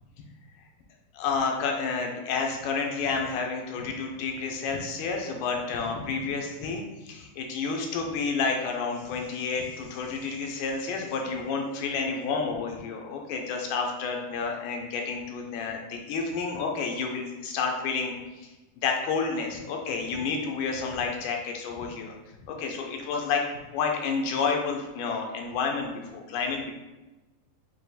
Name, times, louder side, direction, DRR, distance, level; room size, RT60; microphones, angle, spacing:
voice 1, 1.1-18.5 18.8-22.1 22.4-23.4 23.7-26.7, left 5 dB, 85° left, 2 dB, 2.1 m, -30 dB
6.1 x 2.2 x 2.7 m, 1.1 s
omnidirectional pair, 3.6 m